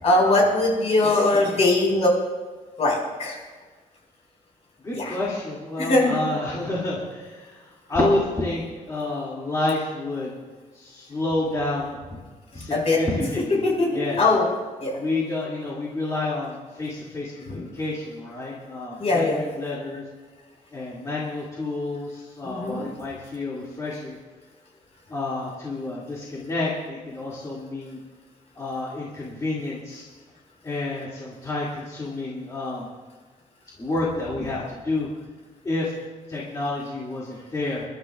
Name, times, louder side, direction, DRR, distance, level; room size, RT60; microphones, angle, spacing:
voice 1, 0.0-2.1 2.8-3.4 4.9-5.2 5.8-6.2 12.7-13.0 13.6-13.9 14.2-14.4 14.8-14.9 17.5-17.6 19.0-19.4 22.4-22.8, left 2 dB, 50° left, -2 dB, 5.2 m, -21 dB
voice 2, 4.8-7.6 7.9-10.4 10.7-12.0 12.5-14.2 15.0-20.0 20.7-24.2 25.1-28.0 28.6-30.1 30.6-32.9 33.8-35.1 35.6-35.9 36.3-37.8, left 2 dB, 25° left, -7 dB, 2.4 m, -29 dB
30.0 x 12.5 x 2.4 m, 1.4 s
wide cardioid pair, 165°, 14 cm